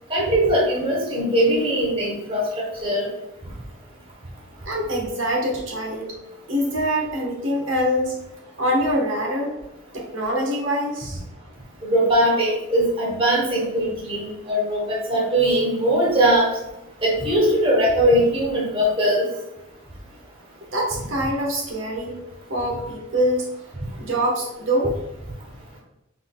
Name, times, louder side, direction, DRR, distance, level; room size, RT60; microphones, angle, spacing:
voice 1, 0.1-2.4 2.8-3.1 11.8-16.5 17.0-19.3, right 1 dB, 25° right, -2 dB, 0.9 m, -20 dB
voice 2, 4.6-6.2 6.5-8.2 8.6-9.6 9.9-11.2 20.7-22.1 22.5-23.5 24.0-25.0, equal, 75° right, -1 dB, 1.2 m, -24 dB
5.8 x 3.7 x 2.3 m, 0.93 s
head